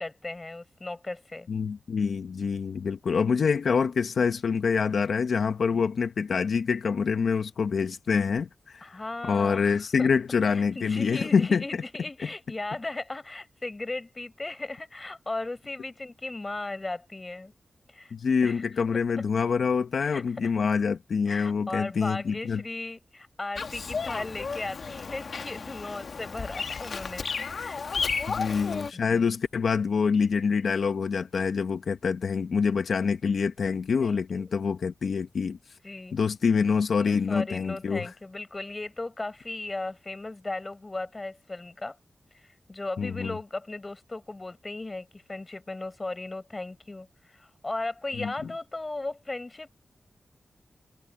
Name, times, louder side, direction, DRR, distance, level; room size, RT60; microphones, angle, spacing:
voice 1, 0.0-1.5 5.7-5.9 8.8-10.1 10.5-17.5 17.9-18.1 18.4-18.6 20.0-20.5 21.3-27.8 28.2-28.4 28.9-29.4 34.0-34.5 35.8-36.2 37.0-42.0 42.3-49.7, left 2 dB, 30° left, 5.0 m, -37 dB
voice 2, 1.5-9.0 9.2-11.6 18.1-22.6 28.3-35.6 36.1-38.1 43.0-43.3 48.2-48.3, left 5 dB, 85° left, 1.0 m, -26 dB
Bird vocalization bird call bird song, 23.6-28.9, left 5 dB, 70° left, 1.4 m, -33 dB
wide cardioid pair, 85°, 0 cm